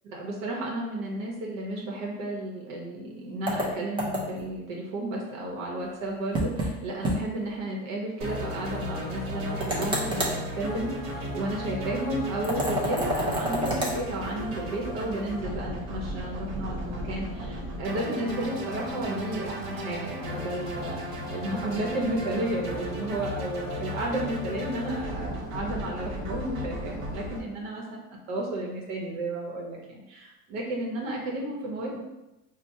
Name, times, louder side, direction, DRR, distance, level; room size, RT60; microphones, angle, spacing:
voice 1, 0.0-32.0, right 1 dB, 75° right, -1 dB, 0.9 m, -33 dB
sound 1, 3.5-4.5 6.3-6.7 7.0-7.2 7.5-7.6 9.6-10.4 12.4-14.0, equal, 15° right, 0.4 m, -28 dB
sound 2, 8.2-27.4, equal, 50° right, 0.9 m, -35 dB
4.2 x 2.1 x 2.6 m, 0.96 s
supercardioid pair, 150°, 39 cm